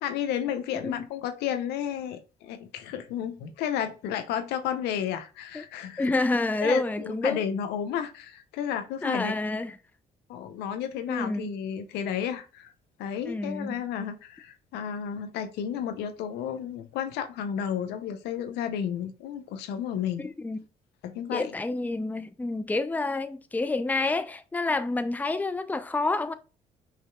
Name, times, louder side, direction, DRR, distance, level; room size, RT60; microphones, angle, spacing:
voice 1, 0.0-6.1 6.6-9.3 10.3-12.7 13.0-20.3 21.0-21.5, left 9 dB, 80° left, 0.6 m, -32 dB
voice 2, 6.0-7.4 9.0-9.7 11.1-11.5 13.3-13.8 20.2-20.6 21.3-26.3, left 2 dB, 10° left, 0.5 m, -28 dB
5.6 x 2.8 x 2.2 m
supercardioid pair, 60°, 17 cm